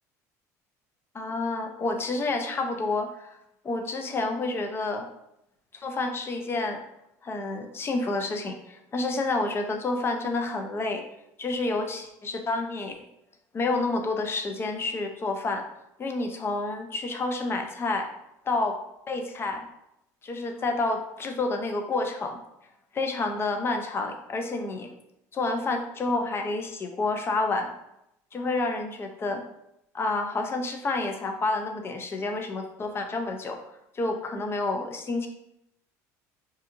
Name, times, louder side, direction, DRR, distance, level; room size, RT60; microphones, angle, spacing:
voice 1, 1.1-3.4 3.6-5.1 5.7-6.8 7.2-11.0 11.4-12.9 13.5-15.6 16.0-18.1 18.5-18.8 19.1-19.7 20.2-22.4 22.9-24.9 25.3-27.7 28.3-29.4 29.9-33.6 33.9-35.3, left 3 dB, 30° left, 4 dB, 0.5 m, -29 dB
2.7 x 2.5 x 2.4 m, 0.81 s
supercardioid pair, 90°, 8 cm